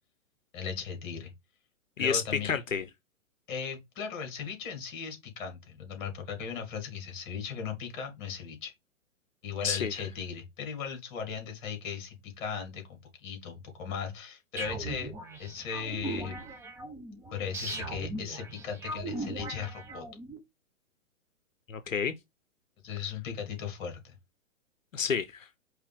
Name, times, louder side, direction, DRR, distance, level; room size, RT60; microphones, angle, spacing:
voice 1, 0.5-1.3 2.0-2.6 3.5-8.7 9.4-15.1 15.4-16.4 17.3-20.1 22.8-24.1, left 7 dB, 40° left, 2.1 m, -37 dB
voice 2, 2.0-2.8 9.6-9.9 21.7-22.1 24.9-25.5, left 6 dB, 85° left, 0.6 m, -29 dB
sound 1, 14.6-20.4, right 2 dB, 5° right, 0.6 m, -39 dB
4.8 x 3.0 x 3.4 m
figure-of-eight pair, 115°, 39 cm